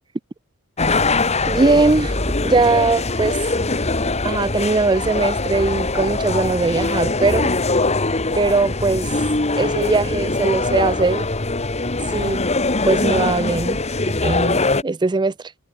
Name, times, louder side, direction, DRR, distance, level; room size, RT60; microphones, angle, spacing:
sound 1, 0.8-14.8, left 3 dB, 30° left, 1.8 m, -22 dB
voice 1, 1.5-2.2 2.4-3.4 4.2-7.5 8.4-9.1 9.6-11.3 12.1-12.4 12.8-13.8 14.2-15.3, right 3 dB, 20° right, 0.4 m, -20 dB
head